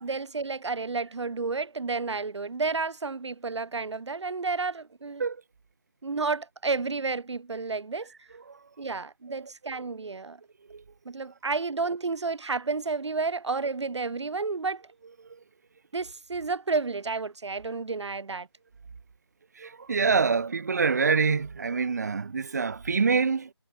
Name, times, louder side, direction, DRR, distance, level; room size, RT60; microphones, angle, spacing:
voice 1, 0.0-5.2 6.0-8.1 8.8-10.4 11.1-14.8 15.9-18.5, right 4 dB, 85° right, 0.6 m, -31 dB
voice 2, 9.3-9.8 10.7-10.8 15.3-15.4 19.6-23.5, right 5 dB, 40° right, 0.7 m, -26 dB
figure-of-eight pair, 165°, 14 cm